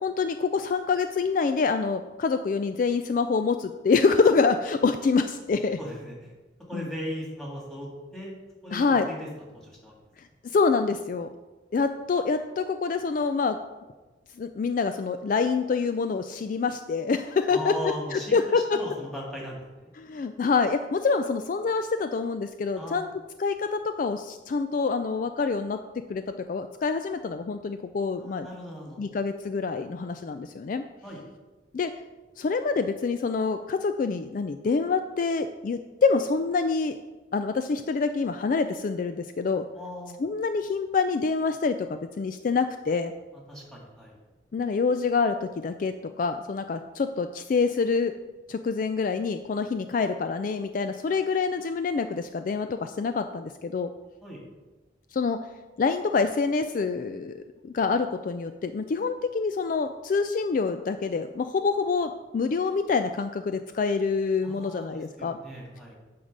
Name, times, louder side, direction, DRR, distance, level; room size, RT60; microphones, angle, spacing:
voice 1, 0.0-5.8 6.7-6.9 8.7-9.1 10.5-11.3 11.7-13.6 14.4-17.7 18.1-18.8 20.0-23.1 23.4-25.8 26.1-26.2 26.5-28.5 29.0-30.8 31.7-31.9 32.4-37.0 37.3-39.7 40.2-43.1 44.5-48.1 48.5-53.9 55.1-55.4 55.8-65.4, left 4 dB, 45° left, 9 dB, 0.3 m, -26 dB
voice 2, 5.8-6.3 6.7-8.4 8.6-9.9 17.5-18.4 18.7-19.9 22.8-23.1 28.2-29.0 31.0-31.2 39.7-40.2 43.3-44.1 54.2-54.4 64.4-66.0, equal, ahead, -3 dB, 2.0 m, -38 dB
9.2 x 4.0 x 6.5 m, 1.2 s
head